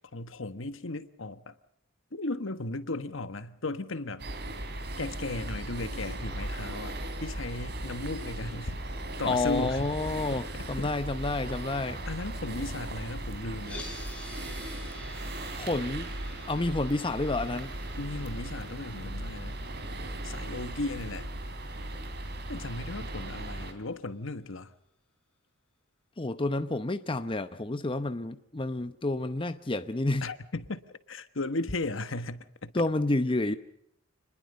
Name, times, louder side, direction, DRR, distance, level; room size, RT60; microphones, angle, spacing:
voice 1, 0.1-1.5 2.1-4.2 5.0-7.0 7.2-8.8 9.2-9.9 10.3-10.9 12.1-13.8 18.0-19.6 20.2-21.3 22.5-24.7 30.2-30.8 31.1-32.8, left 2 dB, 65° left, 1.3 m, -36 dB
sound 1, 4.2-23.7, right 1 dB, 55° right, 3.3 m, -37 dB
voice 2, 9.2-12.1 15.6-16.1 16.5-17.8 26.2-30.3 32.7-33.5, left 2 dB, 25° left, 0.8 m, -29 dB
sound 2, 13.6-23.7, left 2 dB, 5° left, 7.2 m, -50 dB
28.0 x 21.0 x 5.4 m
head